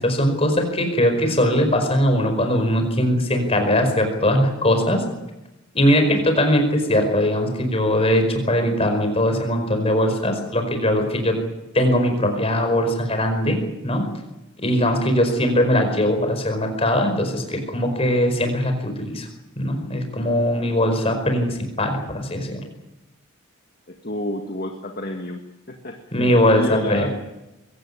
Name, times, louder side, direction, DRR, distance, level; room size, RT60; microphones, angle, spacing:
voice 1, 0.0-5.0 5.7-11.3 11.7-14.1 14.6-19.3 19.6-22.6 26.1-27.1, left 1 dB, 30° left, 6 dB, 5.0 m, -20 dB
voice 2, 23.9-25.4 25.7-27.1, left 1 dB, 45° left, 3 dB, 1.9 m, -30 dB
23.0 x 17.0 x 9.8 m, 0.98 s
head